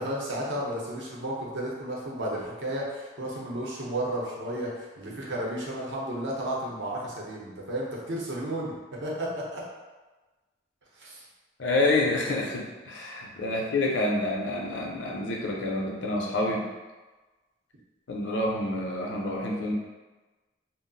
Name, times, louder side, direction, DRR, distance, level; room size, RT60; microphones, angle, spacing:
voice 1, 0.0-9.6 11.0-11.2, right 1 dB, 70° right, -4 dB, 0.7 m, -33 dB
voice 2, 11.6-16.7 18.1-19.7, left 2 dB, 70° left, -1 dB, 0.5 m, -28 dB
2.3 x 2.0 x 3.7 m, 1.2 s
head